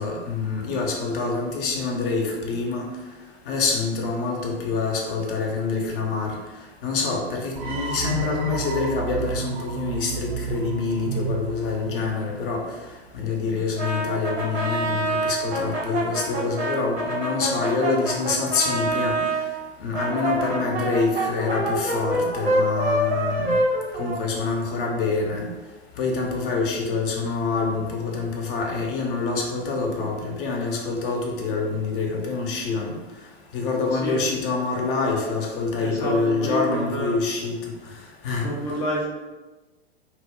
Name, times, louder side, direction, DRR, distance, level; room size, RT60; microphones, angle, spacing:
voice 1, 0.0-2.8 3.5-6.4 6.8-12.6 13.1-19.2 19.8-23.6 24.0-25.5 26.0-32.9 33.5-37.6 38.2-38.5, left 4 dB, 55° left, 1 dB, 0.7 m, -26 dB
sound 1, 7.6-12.7, right 7 dB, 50° right, 0.5 m, -32 dB
Brass instrument, 13.8-19.4 19.9-24.7, right 1 dB, 75° right, 0.9 m, -26 dB
voice 2, 33.9-34.2 35.8-37.2 38.4-39.1, equal, 10° left, -4 dB, 0.3 m, -28 dB
2.0 x 2.0 x 3.5 m, 1.2 s
figure-of-eight pair, 90°, 32 cm